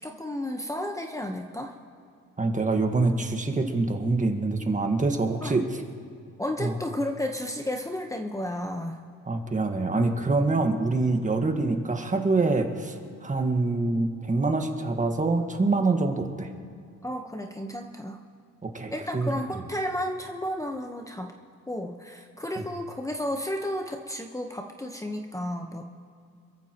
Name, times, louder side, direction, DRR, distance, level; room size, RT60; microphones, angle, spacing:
voice 1, 0.0-1.8 5.4-5.6 6.4-9.0 17.0-18.2 18.9-21.3 21.7-25.9, left 1 dB, 10° left, 3 dB, 1.0 m, -32 dB
voice 2, 2.4-5.8 6.6-6.7 9.3-16.5 18.6-19.3 22.5-22.6, right 3 dB, 25° right, 5 dB, 1.6 m, -25 dB
27.5 x 14.5 x 3.0 m, 2.5 s
cardioid pair, 90°, 30 cm